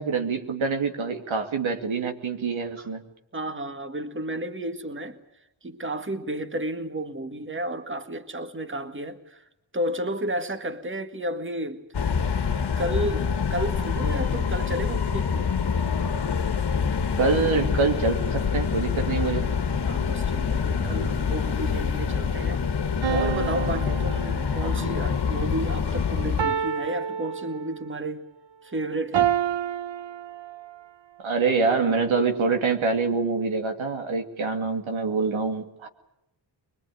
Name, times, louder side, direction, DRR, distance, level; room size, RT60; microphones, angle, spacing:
voice 1, 0.0-3.0 17.2-19.5 24.6-24.9 31.2-35.9, right 4 dB, 85° right, 2.5 m, -25 dB
voice 2, 3.3-5.2 5.6-9.4 9.7-11.8 12.8-15.5 19.9-22.6 23.1-28.3 28.6-29.3, right 1 dB, 25° right, 1.8 m, -32 dB
sound 1, 11.9-26.4, left 6 dB, 55° left, 1.7 m, -26 dB
sound 2, 23.0-24.9 26.4-28.0 29.1-30.8, right 9 dB, 70° right, 0.9 m, -29 dB
23.0 x 21.5 x 9.3 m
cardioid pair, 75°, 46 cm